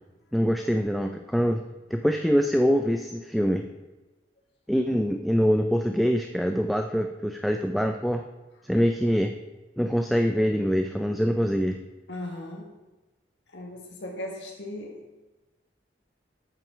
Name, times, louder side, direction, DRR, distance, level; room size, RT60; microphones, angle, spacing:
voice 1, 0.3-1.6 1.9-3.6 4.7-8.2 8.7-9.3 9.8-11.8, equal, ahead, 4 dB, 0.4 m, -24 dB
voice 2, 12.1-12.6 13.5-15.0, left 1 dB, 75° left, -1 dB, 1.6 m, -37 dB
12.5 x 5.8 x 5.0 m, 1.1 s
head